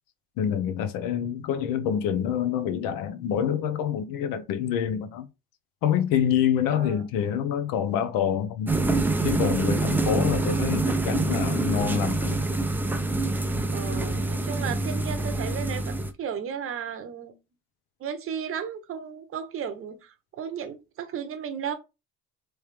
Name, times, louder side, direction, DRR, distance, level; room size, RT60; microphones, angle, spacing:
voice 1, 0.4-5.3 5.8-8.7 9.2-12.4, left 9 dB, 80° left, 0.8 m, -26 dB
voice 2, 6.7-7.1 13.7-17.3 18.0-21.7, right 8 dB, 40° right, 0.8 m, -34 dB
sound 1, 8.7-16.1, right 2 dB, 5° right, 0.3 m, -26 dB
3.3 x 3.1 x 3.3 m
cardioid pair, 120°, 33 cm